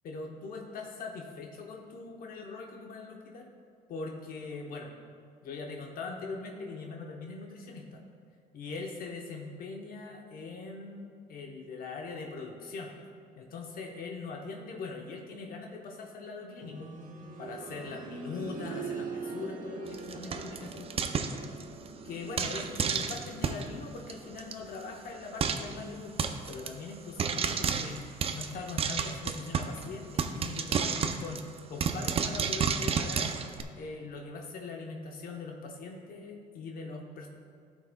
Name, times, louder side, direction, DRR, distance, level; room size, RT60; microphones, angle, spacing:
voice 1, 0.0-3.5 3.9-4.9 5.4-8.0 8.5-12.9 13.4-17.0 17.4-21.1 22.0-31.4 31.7-33.3 33.7-37.3, left 4 dB, 60° left, 2 dB, 0.8 m, -41 dB
sound 1, 16.6-27.4 27.7-27.8 28.7-28.8, right 4 dB, 55° right, 1.1 m, -44 dB
Frying (food), 19.9-21.9 22.4-23.7 24.1-24.2 24.4-24.5 24.8-24.9 25.4-25.7 26.2-26.7 27.2-29.8 30.2-33.6, right 6 dB, 35° right, 0.5 m, -31 dB
13.0 x 6.1 x 2.2 m, 2.1 s
cardioid pair, 110°, 17 cm